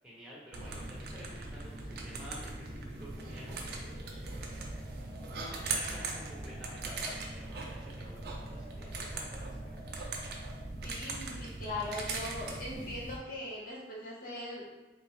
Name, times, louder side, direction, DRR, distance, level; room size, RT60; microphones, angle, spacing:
voice 1, 0.0-9.6, equal, 5° right, -7 dB, 1.0 m, -51 dB
sound 1, 0.5-13.2, right 3 dB, 60° right, 0.5 m, -40 dB
sound 2, 1.1-10.6, right 1 dB, 25° left, 1.2 m, -55 dB
voice 2, 10.8-14.6, left 1 dB, 50° left, -5 dB, 1.0 m, -40 dB
3.6 x 2.8 x 3.0 m, 1.1 s
head